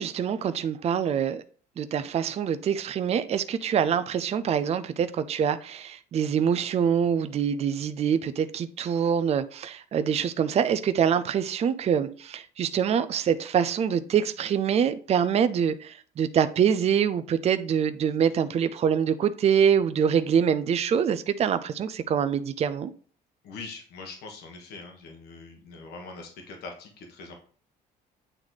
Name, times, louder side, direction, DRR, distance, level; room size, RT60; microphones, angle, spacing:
voice 1, 0.0-1.4 1.8-22.9, right 8 dB, 40° right, 0.5 m, -25 dB
voice 2, 23.4-27.4, left 3 dB, 70° left, 1.5 m, -42 dB
8.9 x 3.2 x 4.0 m
cardioid pair, 110°, 17 cm